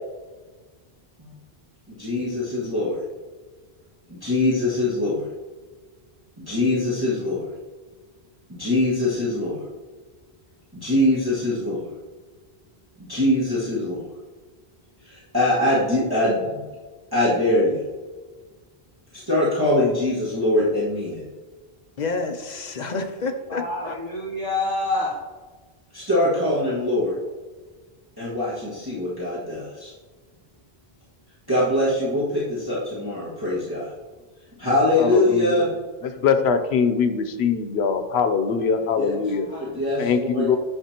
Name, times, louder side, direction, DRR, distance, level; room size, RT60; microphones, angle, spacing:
voice 1, 2.0-3.0 4.1-5.2 6.4-7.4 8.5-9.6 10.7-11.8 13.0-14.0 15.0-16.6 17.1-17.8 19.1-21.2 25.9-27.2 28.2-29.9 31.5-33.9 34.6-35.7 39.0-39.1 39.6-40.5, left 1 dB, 20° right, -11 dB, 1.9 m, -23 dB
voice 2, 22.0-24.0, left 3 dB, 50° left, 6 dB, 0.7 m, -29 dB
voice 3, 23.5-25.3 39.2-39.8 40.5-40.6, left 2 dB, 75° right, -10 dB, 2.3 m, -28 dB
voice 4, 35.0-35.6 36.0-39.5 40.0-40.6, left 6 dB, 85° left, 9 dB, 0.9 m, -22 dB
9.2 x 6.0 x 2.9 m, 1.4 s
omnidirectional pair, 1.0 m